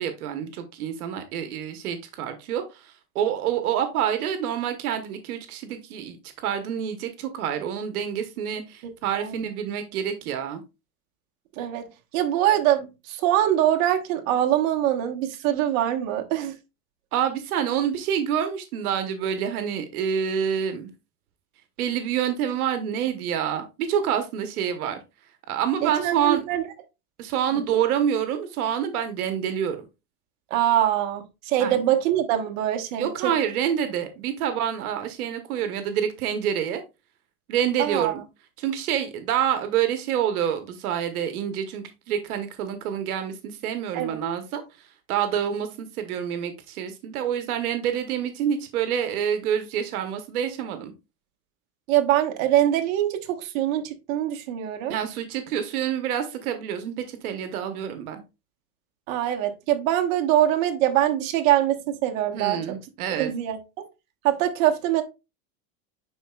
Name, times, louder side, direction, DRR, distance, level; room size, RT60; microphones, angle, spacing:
voice 1, 0.0-10.6 17.1-20.9 21.8-25.0 25.5-26.4 27.2-29.8 31.6-31.8 33.0-36.8 37.5-38.2 38.6-50.9 54.9-58.2 62.3-63.3, right 9 dB, 90° right, 1.2 m, -27 dB
voice 2, 11.6-11.9 12.1-16.5 25.8-26.7 30.5-33.3 37.8-38.2 43.9-44.2 51.9-54.9 59.1-62.6 63.1-63.6 64.2-65.0, right 12 dB, 60° right, 1.3 m, -23 dB
10.0 x 4.1 x 2.3 m
supercardioid pair, 140°, 43 cm